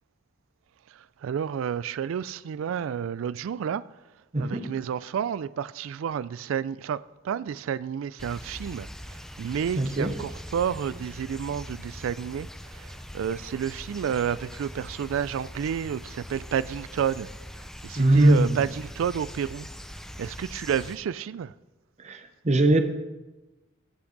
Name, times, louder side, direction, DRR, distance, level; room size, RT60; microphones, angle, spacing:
voice 1, 1.2-3.8 4.4-17.3 17.8-19.7 20.2-21.5, right 8 dB, 80° right, 0.3 m, -30 dB
voice 2, 4.3-4.7 9.8-10.1 18.0-18.6 22.0-22.8, right 1 dB, 35° right, 0.8 m, -21 dB
sound 1, 8.2-21.0, equal, ahead, 0.4 m, -42 dB
16.0 x 6.0 x 3.9 m
head